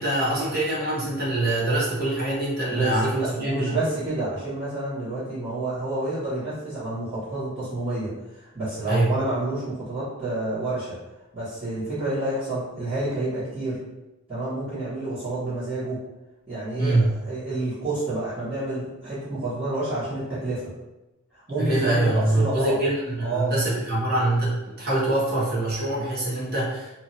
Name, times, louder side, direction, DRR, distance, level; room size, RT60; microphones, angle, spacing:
voice 1, 0.0-3.8 8.9-9.1 16.8-17.1 21.6-26.9, right 1 dB, 50° right, -6 dB, 1.0 m, -24 dB
voice 2, 2.6-11.0 11.3-13.8 14.3-16.0 16.5-20.7 21.3-22.7 23.2-23.5, right 2 dB, 25° right, -16 dB, 1.4 m, -29 dB
2.9 x 2.6 x 2.7 m, 1.0 s
head